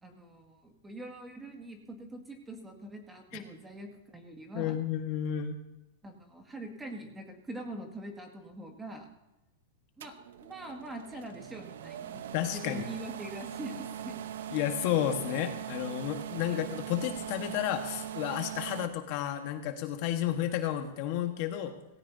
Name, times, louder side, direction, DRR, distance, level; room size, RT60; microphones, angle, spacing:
voice 1, 0.0-4.8 6.0-9.1 10.0-10.1 10.4-14.3 16.5-16.6, right 1 dB, 10° right, 3 dB, 2.0 m, -44 dB
voice 2, 4.5-5.6 12.3-12.8 14.5-21.7, left 11 dB, 45° left, 6 dB, 1.4 m, -32 dB
sound 1, 10.0-18.9, right 10 dB, 75° right, 0.9 m, -41 dB
17.5 x 17.0 x 2.8 m, 0.98 s
supercardioid pair, 155°, 0 cm